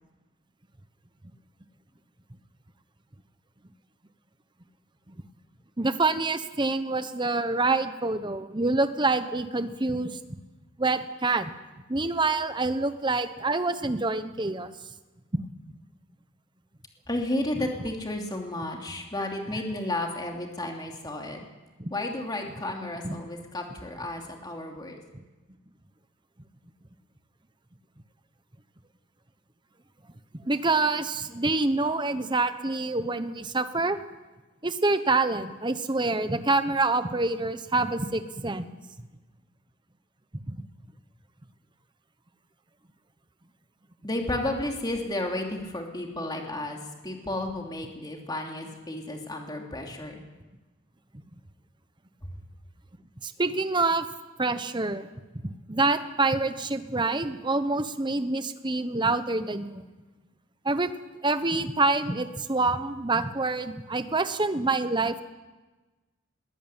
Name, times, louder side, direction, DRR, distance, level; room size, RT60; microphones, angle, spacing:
voice 1, 5.8-10.4 10.8-11.5 11.9-14.7 21.8-21.9 23.0-23.2 30.5-34.0 34.6-38.8 40.5-40.6 53.2-54.0 54.4-55.1 55.4-59.8 60.6-60.9 61.2-65.2, right 3 dB, 20° right, 11 dB, 1.0 m, -26 dB
voice 2, 17.1-21.4 21.9-25.0 44.0-50.2, left 1 dB, 20° left, 1 dB, 2.9 m, -32 dB
21.5 x 15.5 x 9.0 m, 1.2 s
head